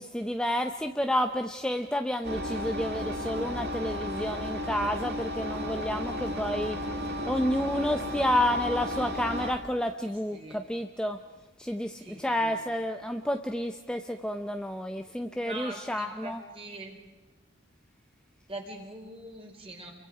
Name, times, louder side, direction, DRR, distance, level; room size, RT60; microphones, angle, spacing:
voice 1, 0.0-6.8 7.3-11.2 11.6-16.4, left 1 dB, 5° left, 5 dB, 0.7 m, -30 dB
Engine, 2.2-9.5, equal, 55° right, 2.2 m, -34 dB
voice 2, 10.0-10.6 12.0-12.6 15.4-17.0 18.5-19.9, right 2 dB, 30° right, 2 dB, 3.9 m, -43 dB
29.5 x 23.5 x 4.9 m, 1.2 s
head